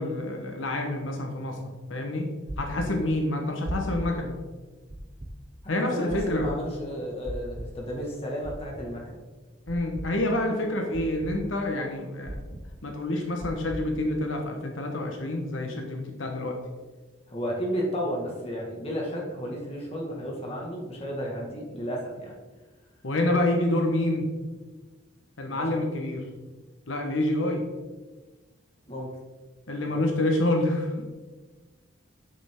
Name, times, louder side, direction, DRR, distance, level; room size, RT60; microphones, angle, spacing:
voice 1, 0.0-1.6 1.9-2.3 2.6-4.4 5.7-6.5 9.7-12.4 12.8-16.6 23.0-24.3 25.4-26.2 26.9-27.6 29.7-30.9, left 1 dB, 80° left, 2 dB, 1.2 m, -27 dB
sound 1, 2.5-2.9 3.6-4.1 4.9-5.3 6.1-6.5 7.2-7.7 8.4-8.8 9.7-10.1 10.9-11.3 12.2-12.6 13.4-13.8, right 1 dB, 30° right, 0.6 m, -36 dB
voice 2, 5.8-9.2 17.3-22.4 25.5-25.8 28.9-29.1 29.9-30.0, equal, 30° left, -2 dB, 1.8 m, -33 dB
9.0 x 6.7 x 3.7 m, 1.3 s
head